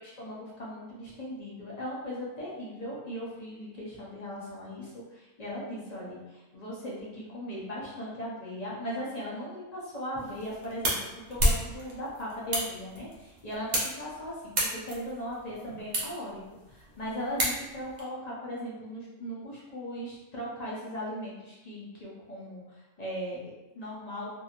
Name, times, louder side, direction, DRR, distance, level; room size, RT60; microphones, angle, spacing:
voice 1, 0.0-10.9 11.3-16.4 16.7-24.3, equal, 40° left, -5 dB, 0.6 m, -38 dB
sound 1, 10.2-18.0, right 1 dB, 45° right, 0.6 m, -33 dB
2.9 x 2.7 x 2.4 m, 1.0 s
omnidirectional pair, 1.3 m